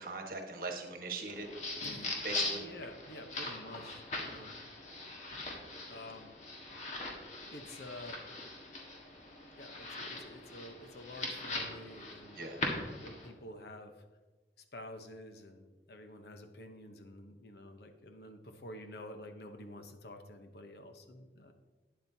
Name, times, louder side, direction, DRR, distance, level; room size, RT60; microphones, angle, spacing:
voice 1, 0.0-1.5 2.2-2.6 3.4-3.5 12.4-12.6, right 3 dB, 50° right, 3 dB, 1.3 m, -40 dB
sound 1, 1.3-13.3, left 2 dB, 40° left, 1.5 m, -41 dB
voice 2, 1.8-4.6 5.9-6.4 7.5-8.3 9.6-14.0 14.7-21.5, left 1 dB, 65° left, 6 dB, 0.9 m, -49 dB
11.5 x 9.4 x 2.8 m, 1.2 s
head